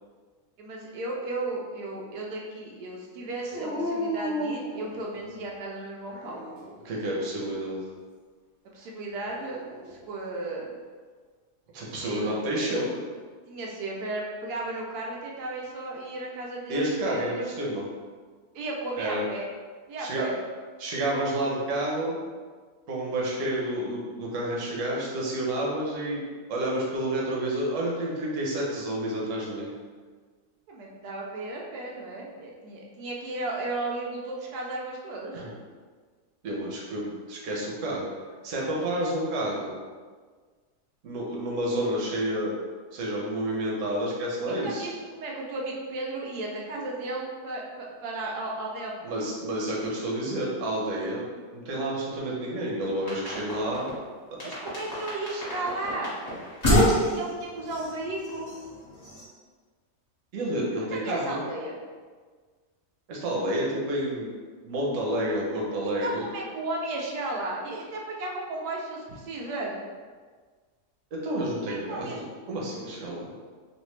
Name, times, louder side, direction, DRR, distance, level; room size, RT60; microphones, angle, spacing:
voice 1, 0.6-6.4 8.7-10.7 11.9-12.4 13.5-17.5 18.5-19.5 19.9-20.4 30.7-35.4 44.5-49.1 54.4-56.2 56.7-58.5 60.8-61.8 66.0-69.8 71.7-72.2, right 2 dB, 85° right, -2 dB, 1.2 m, -34 dB
Dog, 3.5-5.4 6.1-6.9 9.1-10.0, equal, 45° left, 1.0 m, -34 dB
voice 2, 6.8-7.8 11.7-13.0 16.7-17.8 19.0-19.3 20.0-20.3 20.8-22.2 22.9-26.2 26.5-29.7 35.3-35.5 36.4-38.0 38.4-39.7 41.0-42.5 42.9-44.9 49.0-51.2 51.5-54.0 60.3-61.4 63.1-64.3 64.6-66.2 71.1-73.3, right 1 dB, 60° right, -4 dB, 1.0 m, -29 dB
sound 1, 52.8-54.0 54.4-59.2, equal, 30° left, 1.2 m, -28 dB
3.1 x 2.5 x 3.1 m, 1.5 s
omnidirectional pair, 1.6 m